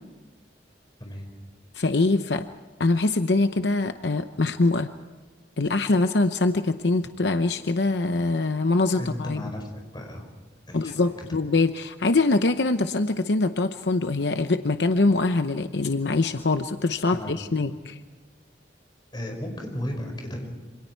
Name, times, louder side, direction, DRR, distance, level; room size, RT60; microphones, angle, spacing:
voice 1, 1.7-2.5 2.8-4.9 5.6-9.4 10.7-17.9, left 3 dB, 70° left, 8 dB, 0.8 m, -23 dB
voice 2, 9.0-10.3 10.7-11.4 17.1-17.8 19.1-20.5, equal, 25° left, 3 dB, 5.2 m, -35 dB
27.5 x 26.5 x 4.6 m, 1.3 s
head